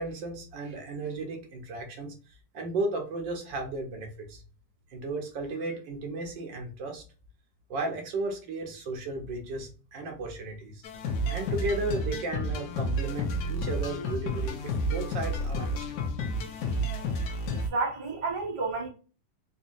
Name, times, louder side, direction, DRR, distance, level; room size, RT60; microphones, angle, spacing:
voice 1, 0.0-2.1 2.5-4.4 4.9-7.0 7.7-10.8 11.3-15.8, right 2 dB, 75° right, 1.7 m, -34 dB
sound 1, 10.8-17.7, equal, 70° left, 1.1 m, -31 dB
voice 2, 17.5-18.9, right 3 dB, 25° right, 0.6 m, -31 dB
4.1 x 2.7 x 2.6 m
omnidirectional pair, 2.0 m